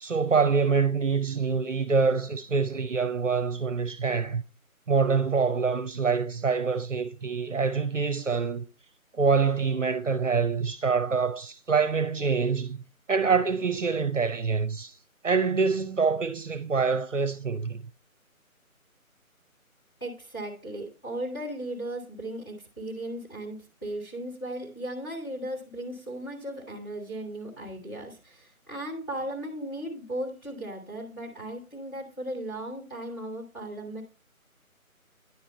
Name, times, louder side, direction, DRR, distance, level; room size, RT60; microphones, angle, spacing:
voice 1, 0.0-4.4 4.9-8.6 9.1-12.8 13.1-14.9 15.2-17.8, right 5 dB, 60° right, 0.8 m, -25 dB
voice 2, 20.0-34.0, right 1 dB, 15° left, 1.5 m, -36 dB
9.9 x 4.6 x 4.2 m
figure-of-eight pair, 180°, 43 cm